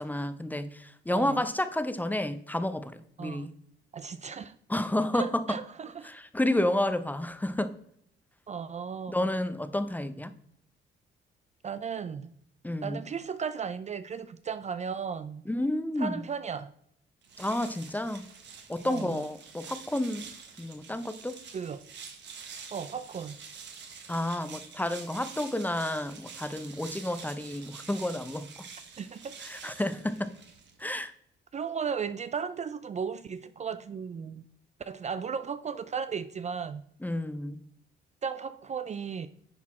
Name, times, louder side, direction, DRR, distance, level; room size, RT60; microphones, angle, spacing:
voice 1, 0.0-3.5 4.7-5.6 6.0-7.7 9.1-10.3 12.6-13.0 15.5-16.2 17.4-18.2 18.7-20.3 20.6-21.3 24.1-28.5 29.4-30.3 30.8-31.1 37.0-37.6, left 1 dB, 10° left, 12 dB, 0.6 m, -30 dB
voice 2, 3.2-3.5 3.9-4.5 5.1-6.1 8.5-9.3 11.6-12.3 12.8-15.4 16.0-16.7 18.9-19.2 21.5-21.8 22.7-23.4 29.0-29.4 31.5-34.4 34.8-36.8 38.2-39.3, right 6 dB, 35° right, 13 dB, 0.4 m, -35 dB
sound 1, 17.2-30.9, right 6 dB, 65° right, 1.4 m, -47 dB
10.5 x 4.1 x 4.3 m, 0.69 s
cardioid pair, 90°, 20 cm